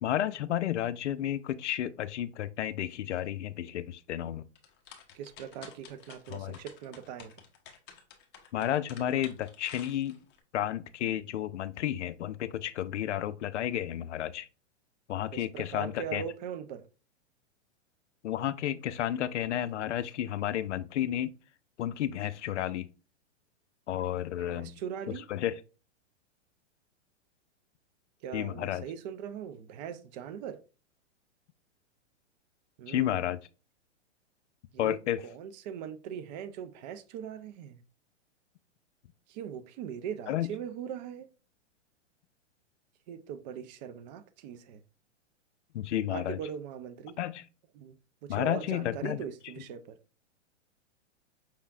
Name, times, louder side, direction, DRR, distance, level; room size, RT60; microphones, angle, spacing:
voice 1, 0.0-4.4 6.3-6.6 8.5-10.2 10.5-14.5 15.1-16.2 18.2-21.3 21.8-22.9 23.9-24.8 25.3-25.5 28.3-28.9 32.9-33.4 34.8-35.2 40.3-40.5 45.7-46.4 47.2-47.4 48.3-49.2, left 11 dB, 75° left, 0.5 m, -32 dB
sound 1, 4.6-10.4, left 7 dB, 30° left, 1.1 m, -51 dB
voice 2, 5.1-7.3 15.3-16.9 24.5-25.2 28.2-30.6 32.8-33.3 34.7-37.8 39.3-41.3 43.1-44.8 46.1-47.2 47.7-47.9 48.2-50.0, right 8 dB, 35° right, 0.5 m, -40 dB
5.7 x 3.5 x 2.4 m
hypercardioid pair, 125°, 36 cm